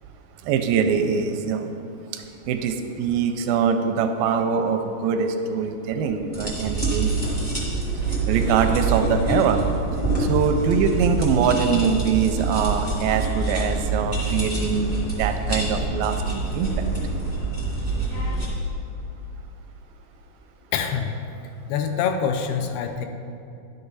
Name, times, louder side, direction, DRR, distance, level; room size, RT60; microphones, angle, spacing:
voice 1, 0.4-1.7 2.1-7.4 8.3-9.6 10.2-14.9 15.2-16.7, right 6 dB, 85° right, 6 dB, 2.1 m, -23 dB
sound 1, 6.3-18.5, right 3 dB, 30° left, 0.8 m, -25 dB
voice 2, 20.7-21.1 21.7-23.1, left 7 dB, 85° left, 5 dB, 2.6 m, -25 dB
11.0 x 6.7 x 4.1 m, 2.6 s
omnidirectional pair, 4.5 m